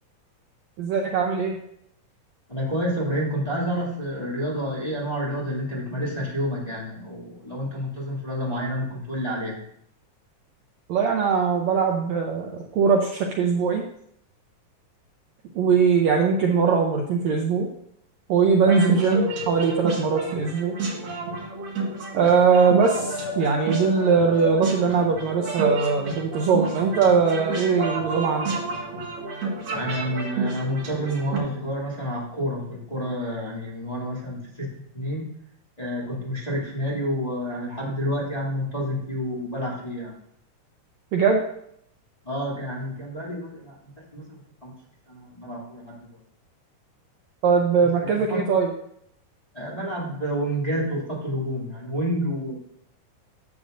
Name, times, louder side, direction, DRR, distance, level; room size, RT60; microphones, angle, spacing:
voice 1, 0.8-1.6 10.9-13.8 15.5-17.7 18.3-20.7 22.1-28.6 41.1-41.4 47.4-48.7, right 5 dB, 85° right, 2 dB, 1.5 m, -21 dB
voice 2, 2.5-9.6 29.7-35.2 35.8-40.1 42.2-43.7 44.1-44.7 45.1-45.8 48.3-48.4 49.5-52.5, equal, 15° left, -6 dB, 1.9 m, -29 dB
sound 1, 18.6-31.4, right 2 dB, 45° right, 2.3 m, -30 dB
12.0 x 7.5 x 2.6 m, 0.72 s
omnidirectional pair, 4.1 m